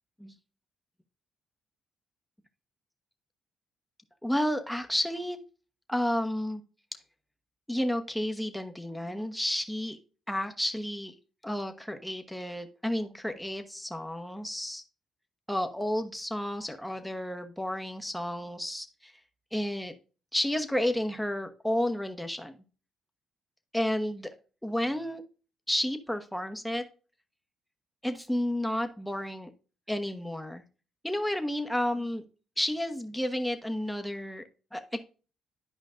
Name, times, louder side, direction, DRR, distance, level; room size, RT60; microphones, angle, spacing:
voice 1, 4.2-5.4 5.9-6.6 7.7-10.0 10.3-11.1 11.4-14.8 15.5-19.1 19.5-19.9 20.3-22.6 23.7-24.3 24.6-25.2 25.7-26.8 28.0-29.5 29.9-30.6 31.0-32.2 32.6-34.4 34.7-35.0, left 1 dB, 5° left, 7 dB, 1.2 m, -31 dB
11.5 x 5.1 x 2.5 m, 0.36 s
cardioid pair, 90°, 0 cm